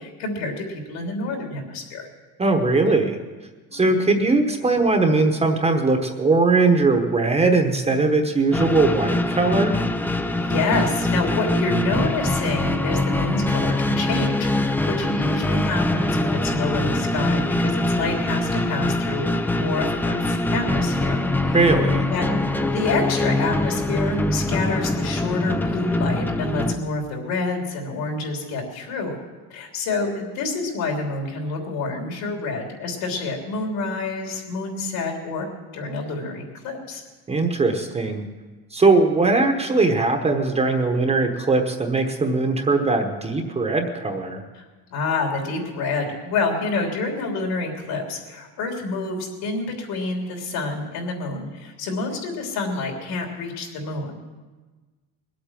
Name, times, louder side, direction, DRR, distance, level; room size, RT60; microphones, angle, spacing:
voice 1, 0.0-2.1 3.7-3.9 10.3-21.6 22.1-22.4 22.7-29.2 29.5-37.0 44.5-44.6 44.9-54.3, left 3 dB, 70° left, 1 dB, 3.4 m, -28 dB
voice 2, 2.4-3.2 3.7-9.8 21.5-22.0 37.3-38.2 38.7-44.4, right 3 dB, 15° right, 4 dB, 1.0 m, -20 dB
sound 1, 8.5-26.7, left 1 dB, 5° left, 0.4 m, -23 dB
20.5 x 8.5 x 7.5 m, 1.3 s
cardioid pair, 160°, 38 cm